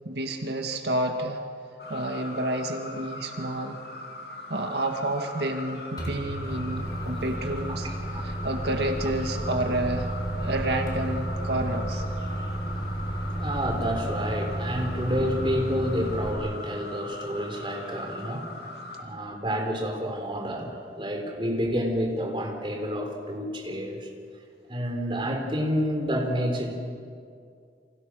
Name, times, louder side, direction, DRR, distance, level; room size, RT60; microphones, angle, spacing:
voice 1, 0.1-1.4 1.9-3.8 4.5-7.9 8.2-12.1, right 1 dB, 75° right, 4 dB, 2.0 m, -29 dB
sound 1, 1.8-19.0, left 2 dB, 60° left, 3.0 m, -41 dB
Microwave oven, 6.0-16.3, right 1 dB, 25° left, 5.0 m, -32 dB
voice 2, 7.7-8.2 13.2-18.7 19.0-24.1 24.7-26.7, equal, 30° right, 2 dB, 4.0 m, -29 dB
29.0 x 26.0 x 6.4 m, 2.3 s
head